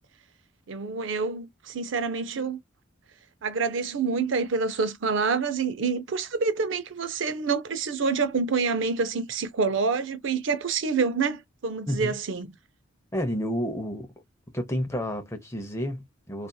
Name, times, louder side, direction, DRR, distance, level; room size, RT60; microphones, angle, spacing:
voice 1, 0.7-2.6 3.4-12.5, right 4 dB, 70° right, 0.5 m, -27 dB
voice 2, 11.9-12.2 13.1-14.1 14.5-16.5, equal, 15° left, 0.6 m, -30 dB
2.7 x 2.4 x 2.2 m
head